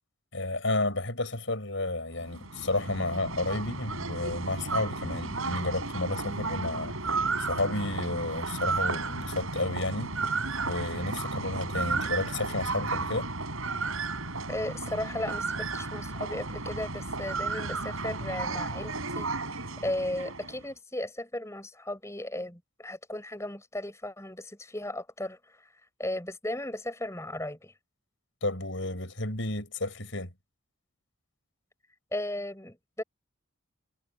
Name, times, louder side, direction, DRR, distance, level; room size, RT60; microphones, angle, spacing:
voice 1, 0.3-6.9 7.4-10.1 10.6-13.3 28.4-30.3, left 2 dB, 65° left, 6.6 m, -31 dB
sound 1, 2.2-20.6, right 3 dB, 80° right, 7.3 m, -33 dB
voice 2, 14.5-25.7 26.0-27.7 32.1-33.0, left 1 dB, 15° left, 5.0 m, -36 dB
head